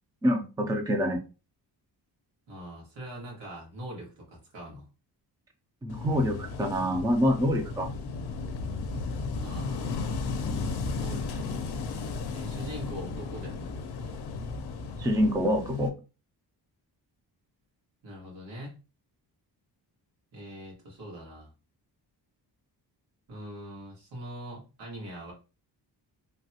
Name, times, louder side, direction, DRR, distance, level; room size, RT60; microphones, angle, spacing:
voice 1, 0.2-1.2 5.8-7.9 15.0-15.9, equal, 10° right, 4 dB, 0.4 m, -26 dB
voice 2, 2.5-4.8 9.4-9.9 11.0-11.7 12.3-13.7 18.0-18.7 20.3-21.5 23.3-25.3, equal, 90° right, -3 dB, 1.7 m, -42 dB
Wind / Waves surf, 5.9-15.9, left 4 dB, 65° left, 0.6 m, -34 dB
3.2 x 2.2 x 2.8 m, 0.32 s
cardioid pair, 110°, 43 cm